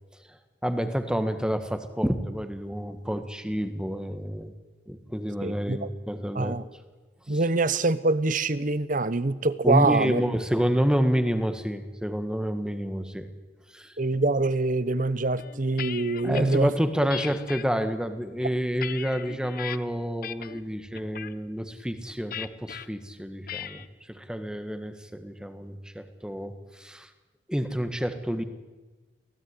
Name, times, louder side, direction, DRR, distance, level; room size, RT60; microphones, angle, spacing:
voice 1, 0.3-4.5 4.9-6.6 7.3-7.4 9.6-13.3 13.7-13.9 16.2-27.1 27.5-28.4, equal, 5° right, 9 dB, 1.7 m, -29 dB
voice 2, 5.4-5.9 6.3-6.6 7.3-10.2 14.0-16.7, right 3 dB, 45° right, 16 dB, 1.0 m, -25 dB
sound 1, 15.4-16.6 17.1-17.6 18.2-19.8 20.2-20.6 20.9-21.3 22.3-22.8 23.5-23.9, left 9 dB, 50° left, 1.0 m, -37 dB
24.0 x 17.0 x 9.8 m, 1.3 s
head